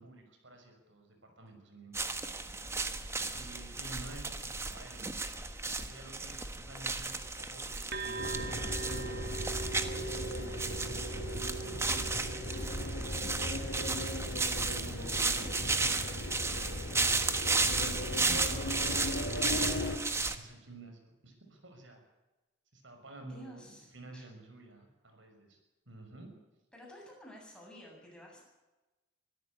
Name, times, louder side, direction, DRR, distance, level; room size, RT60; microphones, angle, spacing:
voice 1, 0.0-2.2 3.3-5.2 5.7-9.3 10.5-11.9 12.8-17.8 18.0-22.0 22.7-25.6 25.9-26.3, right 2 dB, 75° right, 5 dB, 6.2 m, -51 dB
sound 1, 1.9-20.4, right 3 dB, 15° right, 1.3 m, -34 dB
sound 2, 7.9-15.4, right 4 dB, 55° right, 2.8 m, -43 dB
sound 3, 8.2-20.0, left 1 dB, 65° left, 3.0 m, -38 dB
voice 2, 23.2-24.3 26.7-28.4, equal, 5° left, -2 dB, 7.6 m, -52 dB
24.0 x 14.5 x 8.7 m, 1.1 s
head